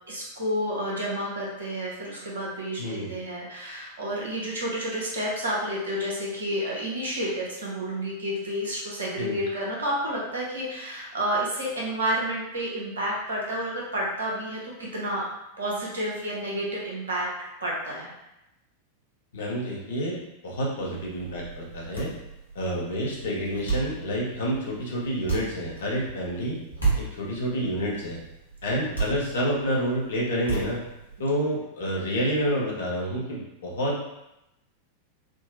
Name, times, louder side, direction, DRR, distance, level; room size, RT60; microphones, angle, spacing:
voice 1, 0.1-15.3 15.6-17.3 17.6-18.1, equal, 70° right, -4 dB, 0.8 m, -30 dB
voice 2, 2.8-3.1 9.2-9.4 19.3-22.1 22.5-26.6 27.0-28.2 28.6-30.8 31.2-34.1, equal, 65° left, -3 dB, 0.8 m, -28 dB
sound 1, 20.8-31.3, right 4 dB, 85° right, 1.2 m, -34 dB
3.7 x 2.0 x 2.5 m, 0.90 s
figure-of-eight pair, 90°, 0 cm